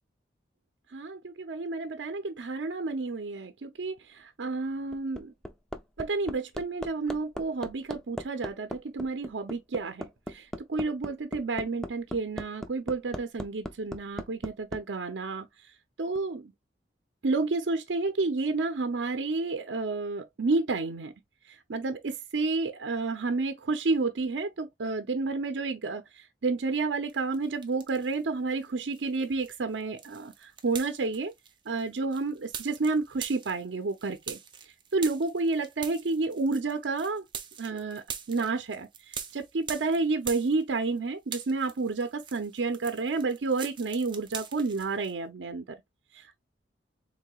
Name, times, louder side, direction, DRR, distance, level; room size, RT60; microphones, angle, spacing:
voice 1, 0.9-5.3 6.0-15.5 16.0-16.5 17.2-21.1 21.5-31.3 31.7-34.4 34.9-37.2 37.6-45.6 46.1-46.4, right 3 dB, 85° right, 0.6 m, -30 dB
Hammer, 4.7-14.8 16.2-16.3, equal, 5° left, 0.4 m, -38 dB
sound 1, 27.1-28.2 28.6-41.0 41.2-45.1, right 7 dB, 25° right, 0.7 m, -43 dB
4.7 x 3.3 x 2.3 m
head